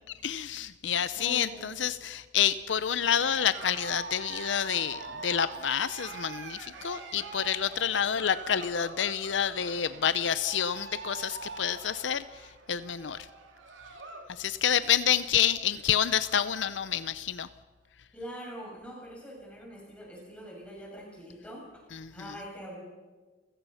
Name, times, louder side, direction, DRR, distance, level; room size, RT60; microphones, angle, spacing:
voice 1, 0.2-13.3 14.3-17.5 21.9-22.3, left 9 dB, 75° left, 14 dB, 0.6 m, -28 dB
voice 2, 1.2-1.8 18.1-21.8 22.1-22.8, equal, 5° left, -3 dB, 7.0 m, -44 dB
Cheering, 3.0-14.3 14.6-15.0 15.5-15.6 15.7-16.6, right 3 dB, 85° right, 3.0 m, -44 dB
29.5 x 16.0 x 5.7 m, 1.3 s
head